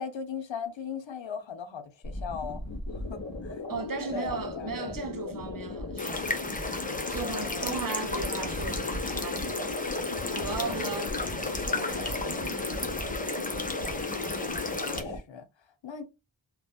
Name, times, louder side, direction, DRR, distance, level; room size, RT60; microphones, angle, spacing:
voice 1, 0.0-3.6 4.1-5.0 6.9-8.2 10.7-11.2 13.8-16.0, left 6 dB, 75° left, 0.6 m, -40 dB
sound 1, 2.0-15.2, left 3 dB, 40° left, 1.1 m, -36 dB
voice 2, 3.7-6.4 7.1-9.7 10.3-13.0, right 5 dB, 50° right, 0.5 m, -37 dB
sound 2, 6.0-15.0, left 2 dB, 20° left, 0.6 m, -34 dB
2.8 x 2.3 x 2.3 m
wide cardioid pair, 45°, 45 cm